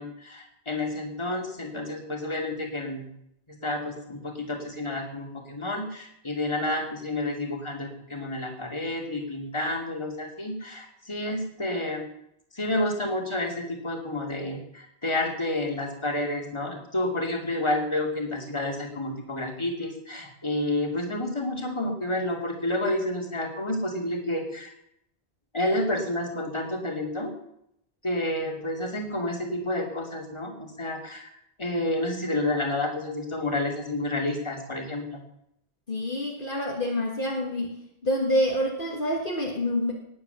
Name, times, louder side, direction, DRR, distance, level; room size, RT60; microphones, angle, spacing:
voice 1, 0.0-3.1 3.5-12.1 12.5-24.7 25.5-27.3 28.0-30.5 30.8-31.3 31.6-35.2, left 1 dB, 25° left, 2 dB, 2.8 m, -30 dB
voice 2, 35.9-37.7 38.0-39.9, left 1 dB, 55° left, 0 dB, 2.0 m, -27 dB
18.5 x 8.5 x 6.9 m, 0.76 s
omnidirectional pair, 1.1 m